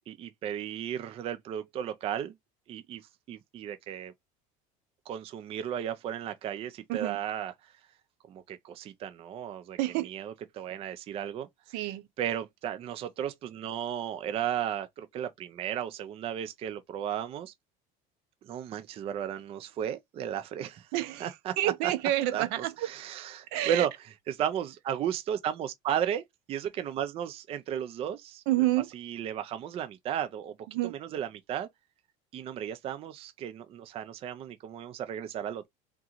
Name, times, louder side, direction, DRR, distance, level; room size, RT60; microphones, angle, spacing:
voice 1, 0.1-2.3 2.7-3.0 3.3-4.1 5.1-7.5 8.3-9.8 10.0-11.5 12.2-17.5 18.4-20.9 21.2-21.6 21.8-21.9 22.3-23.9 24.3-28.4 28.9-30.5 30.8-31.7 32.3-35.7, right 9 dB, 35° right, 0.5 m, -34 dB
voice 2, 9.8-10.1 11.7-12.0 20.9-22.9 23.5-23.9 28.5-28.9 30.7-30.9, right 15 dB, 70° right, 0.7 m, -28 dB
3.7 x 3.6 x 2.9 m
cardioid pair, 155°, 17 cm